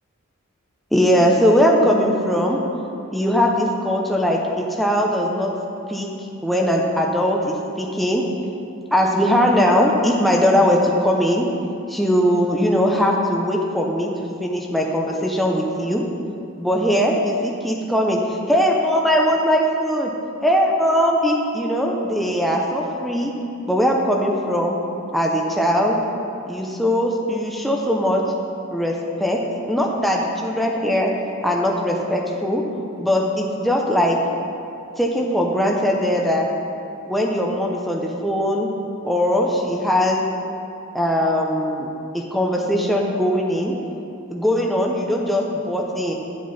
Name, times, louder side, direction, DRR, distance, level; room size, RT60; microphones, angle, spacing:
voice 1, 0.9-2.6 3.1-5.5 5.9-6.1 6.4-8.2 8.9-11.5 11.9-14.1 14.4-16.0 16.6-20.1 20.4-23.3 23.6-24.8 25.1-26.0 26.5-28.2 28.7-28.9 29.2-29.4 29.7-31.1 31.4-32.6 33.0-34.2 35.0-36.4 37.1-38.7 39.0-40.2 40.9-41.9 42.1-43.7 44.3-46.1, equal, ahead, -1 dB, 0.6 m, -20 dB
10.0 x 7.6 x 4.1 m, 2.7 s
head